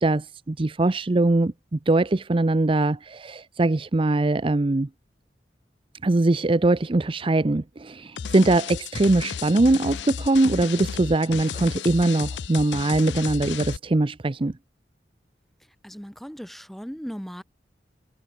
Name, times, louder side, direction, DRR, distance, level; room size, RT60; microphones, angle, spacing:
voice 1, 0.0-4.9 6.0-14.5, right 2 dB, 30° right, 0.6 m, -22 dB
sound 1, 8.2-13.8, left 7 dB, 80° left, 0.5 m, -33 dB
voice 2, 15.6-17.4, equal, ahead, 1.6 m, -38 dB
head